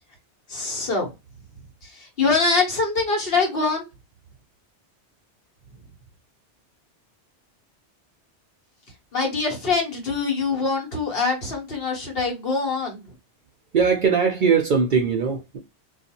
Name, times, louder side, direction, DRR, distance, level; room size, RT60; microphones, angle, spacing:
voice 1, 0.5-1.1 1.8-3.9 9.1-13.1, left 4 dB, 55° left, 1.4 m, -24 dB
voice 2, 13.7-15.6, right 6 dB, 55° right, 0.6 m, -20 dB
2.6 x 2.4 x 2.7 m
omnidirectional pair, 1.2 m